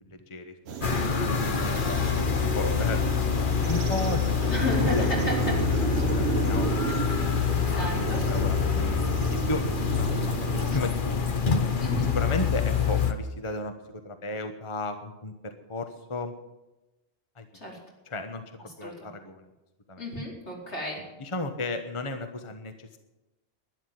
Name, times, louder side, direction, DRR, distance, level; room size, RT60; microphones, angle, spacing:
voice 1, 0.0-1.1 1.4-1.8 2.5-4.4 4.7-5.3 5.7-6.8 7.2-9.1 9.5-9.6 10.0-11.2 12.1-16.3 17.3-17.5 18.0-19.5 19.9-20.0 21.2-23.0, left 2 dB, 30° left, 7 dB, 1.2 m, -34 dB
sound 1, 0.7-10.8, right 6 dB, 70° right, 1.1 m, -33 dB
sound 2, 0.8-13.1, left 6 dB, 50° left, 1.3 m, -26 dB
voice 2, 1.5-2.1 4.5-5.3 6.9-7.0 7.8-8.2 11.8-12.1 17.6-17.8 18.8-19.1 20.0-21.0, left 1 dB, 75° left, -2 dB, 4.8 m, -32 dB
12.5 x 10.5 x 9.4 m, 1.0 s
omnidirectional pair, 1.2 m